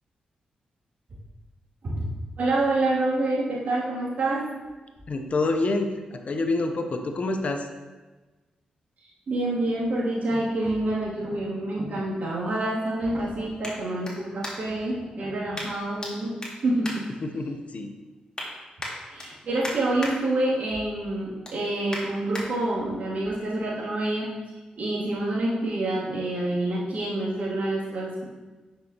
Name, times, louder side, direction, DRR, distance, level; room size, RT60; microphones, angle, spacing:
voice 1, 2.4-4.5 9.3-17.0 19.1-24.3 24.7-28.2, right 2 dB, 65° right, -7 dB, 2.6 m, -27 dB
voice 2, 5.1-7.7 12.0-12.1 17.2-18.0, left 2 dB, 55° left, 6 dB, 0.8 m, -27 dB
sound 1, 13.6-14.9 15.5-16.1 16.4-17.7 18.1-18.5 18.8-20.1 20.6-20.8 21.2-22.5 23.0-23.1, left 1 dB, 30° left, 2.1 m, -38 dB
9.5 x 6.1 x 2.9 m, 1.3 s
cardioid pair, 60°, 3 cm